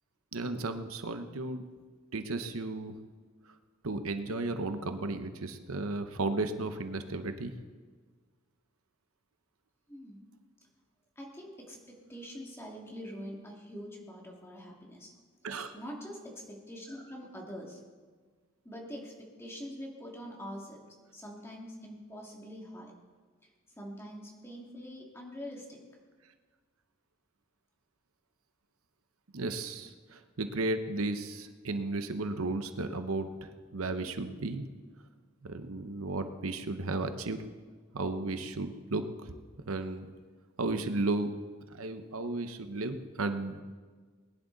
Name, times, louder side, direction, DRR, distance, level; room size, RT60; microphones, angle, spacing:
voice 1, 0.3-1.6 2.1-2.9 3.8-7.5 15.4-15.7 29.3-34.6 35.4-37.4 37.9-39.4 39.7-40.1 40.6-41.3 41.7-43.6, right 2 dB, 85° right, 9 dB, 0.9 m, -34 dB
voice 2, 9.9-10.2 11.2-15.1 15.7-17.8 18.6-19.1 19.4-20.8 21.1-22.9 23.8-25.8, equal, 10° left, -2 dB, 2.3 m, -44 dB
21.0 x 10.5 x 4.0 m, 1.5 s
head